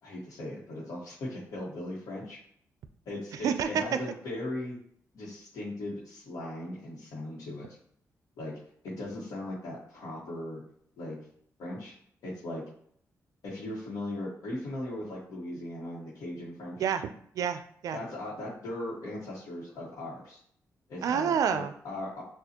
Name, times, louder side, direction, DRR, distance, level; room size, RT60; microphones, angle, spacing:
voice 1, 0.0-2.4 3.0-4.8 5.1-7.8 8.4-8.5 8.8-10.6 11.0-11.2 11.6-11.9 12.2-12.6 13.4-16.8 17.9-20.4 20.9-22.2, left 1 dB, 90° left, -8 dB, 1.2 m, -38 dB
voice 2, 3.4-3.8 16.8-18.0 21.0-21.7, right 7 dB, 75° right, 9 dB, 0.4 m, -28 dB
6.5 x 2.4 x 2.8 m, 0.64 s
cardioid pair, 120°, 6 cm